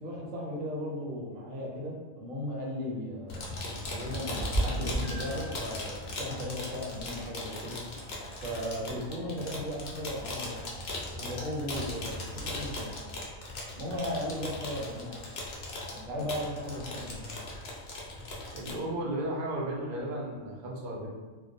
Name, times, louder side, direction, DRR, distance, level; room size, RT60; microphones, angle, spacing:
voice 1, 0.0-3.5 3.9-7.8 8.4-10.6 11.2-13.0 13.7-15.3 15.9-17.3, left 1 dB, 85° right, -3 dB, 1.0 m, -36 dB
sound 1, 3.3-18.8, left 2 dB, 75° left, 0.4 m, -39 dB
Meow, 4.3-14.0, right 2 dB, 15° left, 0.6 m, -40 dB
voice 2, 18.5-21.1, right 1 dB, 60° right, -4 dB, 0.5 m, -34 dB
2.2 x 2.2 x 2.6 m, 1.3 s
omnidirectional pair, 1.4 m